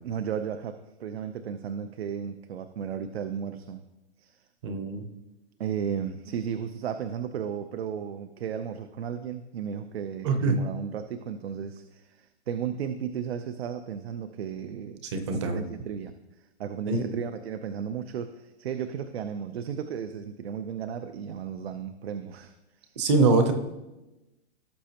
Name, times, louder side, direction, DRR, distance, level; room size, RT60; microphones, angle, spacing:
voice 1, 0.0-3.8 4.2-4.4 5.6-16.1 16.6-23.0, right 8 dB, 65° right, 10 dB, 0.7 m, -34 dB
voice 2, 4.6-5.1 10.2-10.5 15.0-15.6 16.9-17.1 23.0-23.5, right 3 dB, 25° right, 8 dB, 0.8 m, -24 dB
17.0 x 6.5 x 2.9 m, 1.0 s
hypercardioid pair, 175°, 33 cm